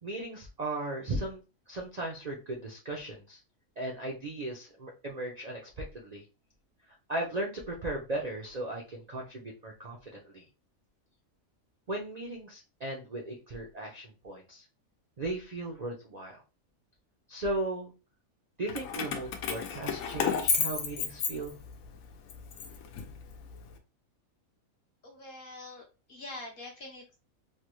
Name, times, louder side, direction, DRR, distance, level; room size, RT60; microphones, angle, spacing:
voice 1, 0.0-1.4 1.7-3.4 3.8-6.2 7.1-10.4 11.9-14.6 15.2-16.4 17.3-17.9 18.6-21.5, right 2 dB, 50° right, -1 dB, 0.5 m, -37 dB
Keys jangling, 18.7-21.9 22.3-23.6, left 6 dB, 80° left, 1.0 m, -32 dB
voice 2, 25.0-27.2, left 2 dB, 50° left, -1 dB, 0.8 m, -45 dB
3.2 x 2.2 x 3.1 m, 0.30 s
omnidirectional pair, 1.5 m